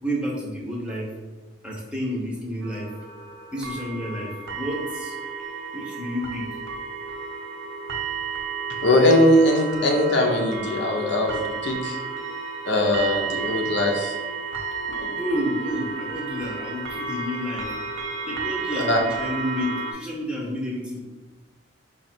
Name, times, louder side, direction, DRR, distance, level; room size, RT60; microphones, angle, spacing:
voice 1, 0.0-1.1 1.6-2.9 3.5-5.2 5.7-6.6 14.9-17.7 18.2-21.1, equal, 5° right, -4 dB, 0.7 m, -30 dB
sound 1, 2.6-19.9, right 4 dB, 75° right, 0.8 m, -32 dB
voice 2, 8.8-12.0 12.6-14.1 18.9-19.0, left 1 dB, 60° left, 1 dB, 0.7 m, -20 dB
4.9 x 2.5 x 4.3 m, 1.2 s
head